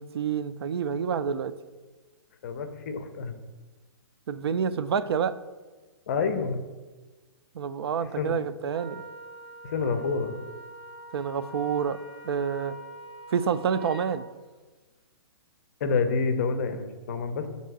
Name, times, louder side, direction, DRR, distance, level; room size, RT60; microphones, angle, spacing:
voice 1, 0.0-1.5 4.3-5.3 7.5-9.0 11.1-12.0 12.2-12.7 13.3-14.3, right 7 dB, 75° right, 13 dB, 0.4 m, -28 dB
voice 2, 2.4-3.3 6.1-6.6 8.2-8.4 9.6-10.3 15.8-17.5, left 4 dB, 40° left, 8 dB, 0.6 m, -28 dB
Wind instrument woodwind instrument, 8.7-14.2, equal, 5° right, 0.5 m, -44 dB
7.3 x 2.8 x 5.9 m, 1.3 s
hypercardioid pair, 170°, 13 cm